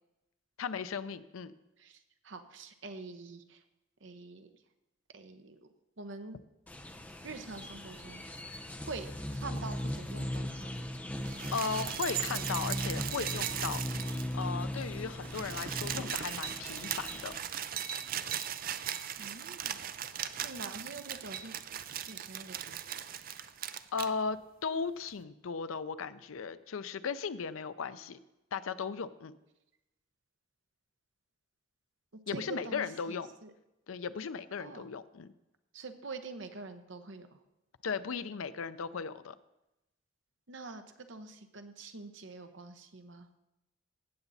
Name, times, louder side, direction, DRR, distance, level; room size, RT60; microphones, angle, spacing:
voice 1, 0.6-1.5 11.5-13.8 14.3-17.3 23.9-28.2 28.5-29.4 32.3-33.3 33.9-35.3 37.8-39.3, left 5 dB, 85° left, 13 dB, 0.5 m, -36 dB
voice 2, 2.2-3.6 4.0-4.5 5.1-5.6 6.0-6.4 7.2-8.2 8.9-10.9 19.2-19.8 20.4-21.6 22.1-22.8 32.1-33.2 33.4-33.5 34.6-34.9 35.7-37.3 40.5-40.8 41.1-43.3, right 3 dB, 60° right, 7 dB, 0.9 m, -45 dB
sound 1, 6.7-17.4, left 1 dB, 10° left, 0.7 m, -38 dB
sound 2, 11.2-14.5 14.8-14.9 15.1-24.1 25.1-25.2, right 10 dB, 45° right, 0.4 m, -38 dB
16.5 x 7.1 x 4.1 m, 0.93 s
head